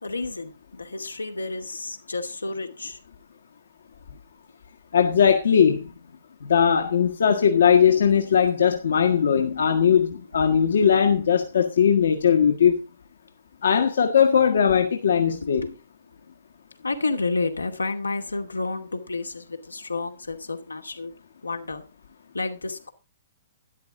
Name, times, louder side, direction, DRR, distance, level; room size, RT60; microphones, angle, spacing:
voice 1, 0.0-3.0 7.9-8.7 9.0-9.5 9.9-11.0 11.4-11.5 15.3-15.7 16.8-21.1 21.4-21.8 22.3-22.9, left 3 dB, 85° left, 2.5 m, -31 dB
voice 2, 4.9-5.9 6.5-12.8 13.6-15.6, left 7 dB, 65° left, 1.8 m, -19 dB
13.0 x 11.0 x 3.8 m
figure-of-eight pair, 120°, 0 cm